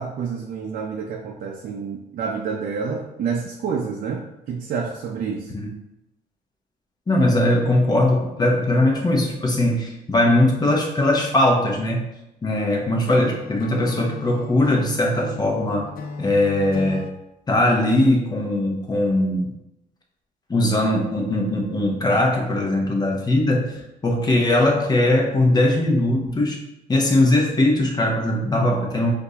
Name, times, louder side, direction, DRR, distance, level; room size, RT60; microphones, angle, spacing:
voice 1, 0.0-5.5, right 5 dB, 55° right, 0 dB, 0.6 m, -28 dB
voice 2, 7.1-12.1 12.4-15.9 16.2-17.1 17.5-19.5 20.5-26.6 26.9-29.1, left 1 dB, 25° left, 0 dB, 1.0 m, -20 dB
Acoustic guitar / Strum, 13.0-17.1, left 4 dB, 60° left, 0.5 m, -36 dB
4.5 x 2.7 x 4.0 m, 0.91 s
cardioid pair, 110°, 17 cm